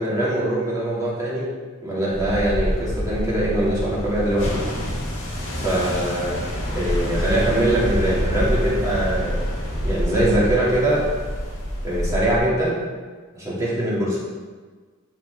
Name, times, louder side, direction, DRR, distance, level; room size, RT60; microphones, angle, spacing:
voice 1, 0.0-1.4 1.8-4.6 5.6-6.4 6.7-9.4 9.8-11.0 11.8-12.8 13.4-14.2, right 1 dB, 15° right, -8 dB, 2.3 m, -22 dB
sound 1, 2.1-12.4, equal, 65° left, 2.2 m, -26 dB
13.0 x 4.4 x 3.5 m, 1.4 s
head